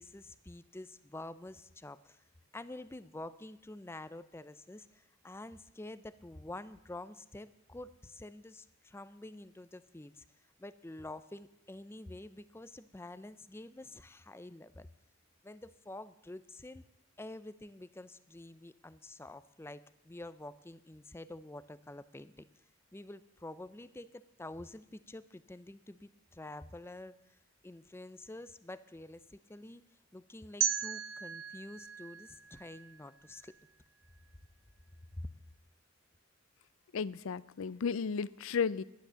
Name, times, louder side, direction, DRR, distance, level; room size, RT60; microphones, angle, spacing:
voice 1, 0.0-2.2 2.5-10.2 10.6-14.9 15.4-16.8 17.2-22.4 22.9-27.4 27.6-29.8 30.1-33.5 35.2-35.3, left 2 dB, 10° left, 15 dB, 0.4 m, -48 dB
sound 1, 30.6-33.5, right 8 dB, 75° right, 1.1 m, -37 dB
voice 2, 36.9-38.8, left 6 dB, 75° left, 19 dB, 0.4 m, -34 dB
12.0 x 10.5 x 6.9 m, 0.85 s
head